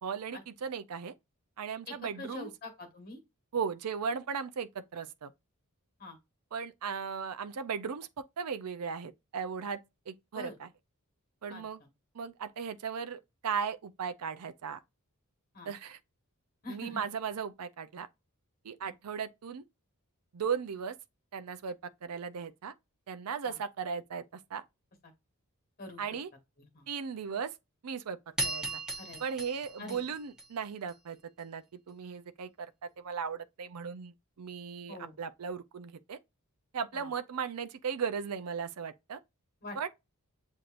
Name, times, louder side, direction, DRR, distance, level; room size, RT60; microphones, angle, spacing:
voice 1, 0.0-1.1 1.6-2.5 3.5-5.3 6.5-9.8 10.1-10.7 11.4-11.8 12.1-14.8 15.7-16.0 16.7-18.1 18.6-19.6 20.3-21.0 21.3-21.8 22.0-22.7 23.1-24.2 24.5-24.6 26.0-26.3 26.9-27.5 27.8-28.2 28.4-28.8 29.2-32.7 33.0-36.2 36.7-39.2 39.8-39.9, right 6 dB, 85° right, 0.5 m, -37 dB
voice 2, 1.9-3.2 6.0-6.2 10.3-10.6 11.5-11.9 15.5-15.7 16.6-17.0 18.8-18.9 23.4-23.6 25.0-25.1 25.8-26.0 26.6-26.9 29.0-29.2 29.8-30.0 34.9-35.2 36.9-37.1 39.6-39.9, left 2 dB, 45° left, 1.4 m, -45 dB
sound 1, 28.4-30.9, right 2 dB, 5° right, 1.0 m, -37 dB
7.7 x 2.7 x 2.5 m
head